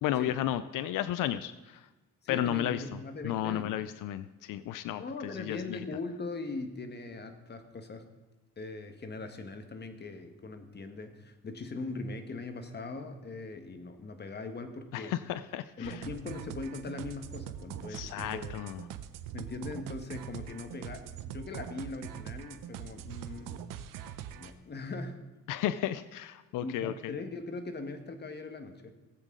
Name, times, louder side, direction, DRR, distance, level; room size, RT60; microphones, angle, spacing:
voice 1, 0.0-1.8 2.3-2.8 3.2-5.0 5.3-5.8 14.9-15.9 17.9-18.8 25.5-27.1, left 12 dB, 85° left, 13 dB, 0.5 m, -33 dB
voice 2, 2.2-3.8 5.0-8.0 8.6-15.1 15.8-18.6 19.3-23.6 24.4-25.2 26.6-28.9, left 3 dB, 30° left, 7 dB, 1.3 m, -40 dB
sound 1, 15.8-24.5, right 10 dB, 85° right, 0.7 m, -43 dB
18.0 x 8.1 x 3.7 m, 1.1 s
cardioid pair, 110°, 31 cm